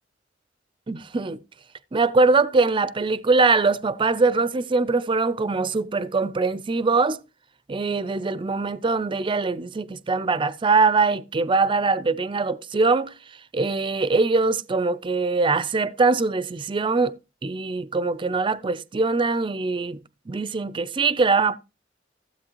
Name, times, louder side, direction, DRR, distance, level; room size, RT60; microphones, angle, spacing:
voice 1, 0.9-1.4 1.9-7.2 7.7-13.1 13.5-17.1 17.4-20.0 20.3-21.6, right 3 dB, 25° right, 0.4 m, -22 dB
15.0 x 8.2 x 3.0 m
head